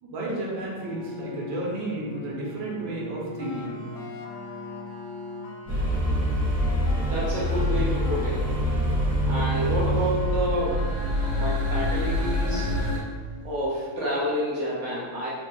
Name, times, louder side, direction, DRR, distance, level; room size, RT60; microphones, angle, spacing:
voice 1, 0.0-3.8, right 1 dB, 90° right, -4 dB, 1.6 m, -32 dB
Bowed string instrument, 0.6-6.1, left 2 dB, 10° left, 0.5 m, -40 dB
sound 1, 3.4-12.2, left 4 dB, 75° left, 0.8 m, -42 dB
sound 2, 5.7-13.0, equal, 25° right, 1.4 m, -25 dB
voice 2, 7.1-8.8 9.2-10.9 11.4-12.7 13.4-15.3, equal, 70° right, -6 dB, 0.6 m, -29 dB
4.2 x 2.5 x 3.5 m, 1.4 s
omnidirectional pair, 2.0 m